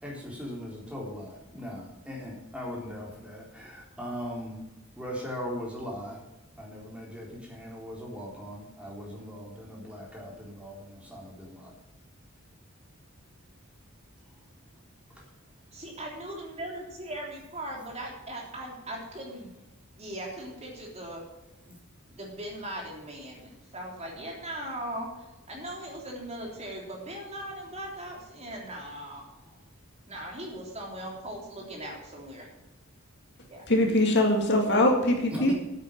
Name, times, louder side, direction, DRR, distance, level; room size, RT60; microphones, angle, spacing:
voice 1, 0.0-4.6 5.0-6.2 6.6-11.7 15.1-15.2 35.3-35.5, equal, 5° right, -3 dB, 3.8 m, -39 dB
voice 2, 15.7-19.5 20.0-21.2 21.6-21.8 22.2-25.1 25.5-29.2 30.1-32.5 33.5-33.6, right 1 dB, 30° right, -1 dB, 3.3 m, -39 dB
voice 3, 33.7-35.5, left 1 dB, 55° left, 2 dB, 2.2 m, -22 dB
9.3 x 9.0 x 7.3 m, 0.99 s
head